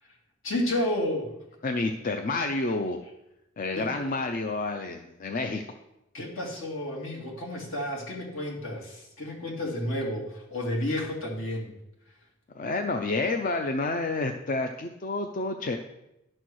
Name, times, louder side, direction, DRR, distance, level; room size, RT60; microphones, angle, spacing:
voice 1, 0.4-1.3 3.7-3.9 6.1-11.7, left 1 dB, 70° left, -2 dB, 2.6 m, -31 dB
voice 2, 1.6-3.0 3.6-5.6 12.5-15.8, left 3 dB, 40° left, 5 dB, 0.5 m, -29 dB
12.0 x 4.4 x 6.3 m, 0.89 s
head